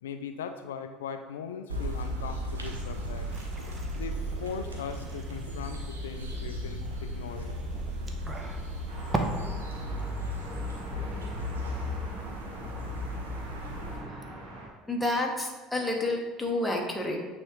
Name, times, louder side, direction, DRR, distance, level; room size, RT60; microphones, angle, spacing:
voice 1, 0.0-3.3 3.9-7.6, left 6 dB, 75° left, 8 dB, 0.3 m, -39 dB
sound 1, 1.7-14.0, equal, 85° right, 0.9 m, -36 dB
sound 2, 2.6-9.2, right 2 dB, 25° right, 0.8 m, -39 dB
sound 3, 8.9-14.7, right 1 dB, 65° right, 1.4 m, -42 dB
voice 2, 14.9-17.2, left 2 dB, 5° left, -1 dB, 1.1 m, -29 dB
8.6 x 3.5 x 3.2 m, 1.3 s
figure-of-eight pair, 65°, 0 cm